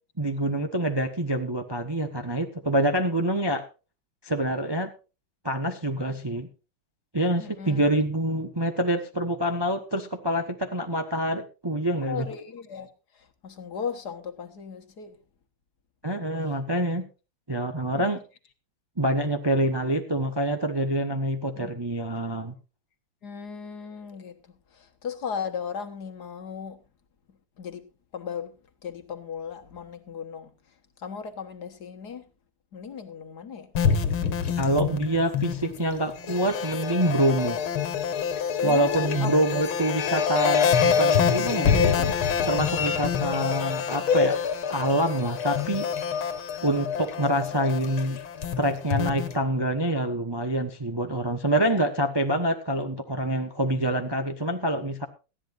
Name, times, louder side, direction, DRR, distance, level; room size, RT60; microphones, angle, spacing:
voice 1, 0.2-3.6 4.2-4.9 5.4-6.5 7.1-12.3 16.0-17.1 17.5-18.2 19.0-22.5 34.6-37.6 38.6-42.1 42.5-44.4 44.7-45.9 46.6-48.2 48.6-55.1, right 1 dB, 20° right, 0.7 m, -26 dB
voice 2, 7.4-7.8 12.1-12.9 13.2-15.1 17.9-18.2 21.6-21.7 23.2-24.4 24.7-26.8 27.6-27.9 28.1-28.5 28.8-30.5 31.0-32.2 32.7-33.7 38.1-38.2 38.6-39.3 41.5-42.1 51.5-51.8, left 7 dB, 55° left, 1.8 m, -36 dB
sound 1, 33.7-49.4, left 7 dB, 80° left, 2.1 m, -26 dB
19.0 x 14.0 x 2.6 m
omnidirectional pair, 2.2 m